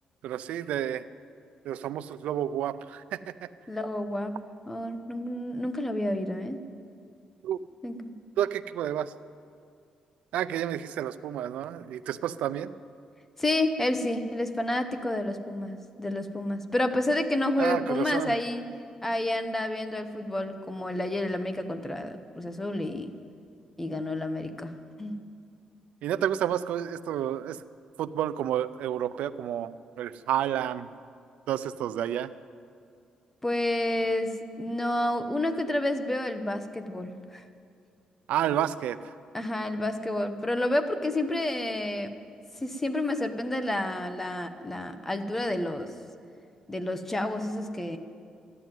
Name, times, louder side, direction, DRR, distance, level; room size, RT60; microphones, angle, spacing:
voice 1, 0.2-1.0 1.6-3.5 7.4-7.6 8.4-9.1 10.3-12.7 17.6-18.4 26.0-27.6 28.0-29.7 30.0-30.9 31.5-32.3 38.3-39.1, right 11 dB, 90° right, 13 dB, 0.4 m, -30 dB
voice 2, 3.7-4.4 4.7-6.6 7.8-8.1 13.4-18.6 19.0-23.1 23.8-24.7 25.0-25.2 33.4-37.4 39.3-42.1 42.6-45.9 46.7-48.0, left 1 dB, 15° left, 8 dB, 1.0 m, -29 dB
13.5 x 11.0 x 9.2 m, 2.3 s
cardioid pair, 115°, 2 cm